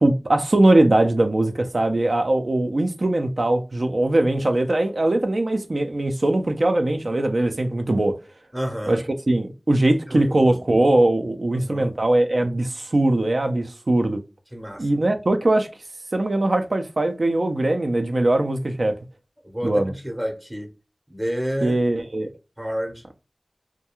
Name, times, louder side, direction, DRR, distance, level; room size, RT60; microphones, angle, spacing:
voice 1, 0.0-8.1 8.9-9.0 9.3-14.2 14.8-15.7 16.1-18.9 19.6-19.9 21.6-22.3, right 1 dB, 70° right, 0.4 m, -21 dB
voice 2, 8.5-9.0 10.1-10.6 11.5-11.9 14.5-14.9 19.4-20.7 21.1-21.8 22.6-23.0, equal, 20° right, 0.7 m, -30 dB
2.3 x 2.2 x 2.9 m
wide cardioid pair, 40°, 0 cm